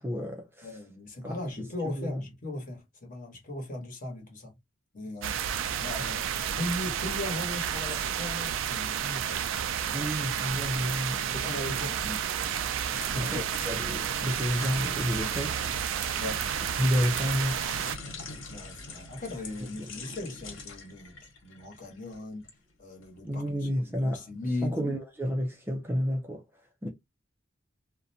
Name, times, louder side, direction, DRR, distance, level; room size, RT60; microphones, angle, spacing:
voice 1, 0.0-0.8 1.2-2.2 9.9-11.2 12.0-12.2 13.2-15.6 16.8-17.7 19.8-19.9 23.2-26.4 26.8-26.9, equal, 10° right, 0.5 m, -31 dB
voice 2, 0.6-4.6 4.9-5.4 5.8-6.3 6.6-10.2 11.2-12.1 12.9-13.4 16.1-16.4 18.4-21.1 21.4-22.4 22.8-24.8, left 1 dB, 40° left, 1.1 m, -38 dB
sound 1, 5.2-18.0, right 9 dB, 75° right, 0.4 m, -31 dB
sound 2, 12.6-22.6 23.0-23.2, left 3 dB, 85° left, 1.2 m, -44 dB
2.5 x 2.1 x 2.7 m
head